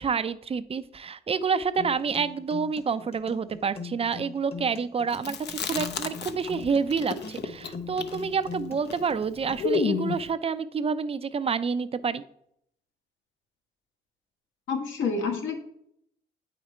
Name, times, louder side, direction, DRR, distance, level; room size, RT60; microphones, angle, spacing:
voice 1, 0.0-12.2, right 5 dB, 30° right, 13 dB, 0.5 m, -28 dB
sound 1, 1.8-9.8, left 5 dB, 30° left, 1.2 m, -42 dB
Chewing mastication, 5.1-6.6 6.9-10.3, left 5 dB, 60° left, 0.7 m, -30 dB
voice 2, 14.7-15.6, left 5 dB, 75° left, 3 dB, 1.6 m, -28 dB
8.5 x 5.1 x 4.3 m, 0.72 s
cardioid pair, 90°, 20 cm